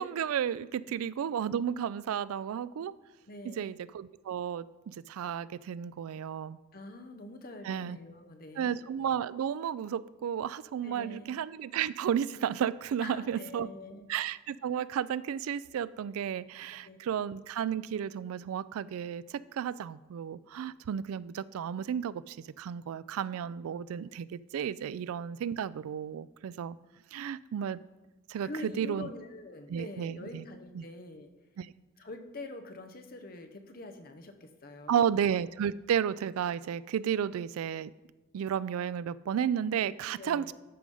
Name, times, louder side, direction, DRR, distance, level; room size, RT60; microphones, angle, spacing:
voice 1, 0.0-2.9 3.6-6.6 7.6-8.0 8.6-13.7 14.1-26.8 27.1-27.8 28.3-29.1 29.7-30.4 30.7-30.8 31.6-31.7 34.9-37.9 38.3-40.5, right 8 dB, 85° right, 19 dB, 0.3 m, -33 dB
voice 2, 3.3-3.8 6.7-8.8 10.8-11.4 13.0-14.1 16.8-17.0 28.4-31.3 32.0-35.2 40.2-40.5, left 2 dB, 45° left, 6 dB, 0.8 m, -45 dB
12.5 x 4.9 x 5.4 m, 1.1 s
head